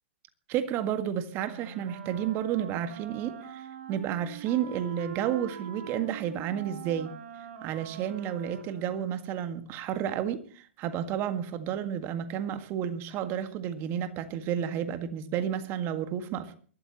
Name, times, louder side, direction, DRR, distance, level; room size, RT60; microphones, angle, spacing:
voice 1, 0.5-7.2 7.6-16.6, right 9 dB, 35° right, 1.8 m, -31 dB
Wind instrument woodwind instrument, 1.3-9.5, right 7 dB, 60° right, 3.1 m, -44 dB
23.0 x 13.0 x 3.0 m
hypercardioid pair, 115°, 6 cm